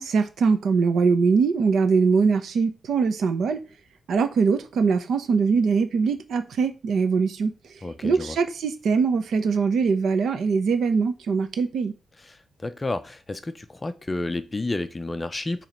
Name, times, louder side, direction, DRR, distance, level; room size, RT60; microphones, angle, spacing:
voice 1, 0.0-3.6 4.1-7.5 8.0-11.9, right 5 dB, 70° right, 0.9 m, -22 dB
voice 2, 7.8-8.4 12.2-15.7, left 2 dB, 15° left, 0.5 m, -31 dB
7.2 x 3.1 x 5.2 m
wide cardioid pair, 175°, 0 cm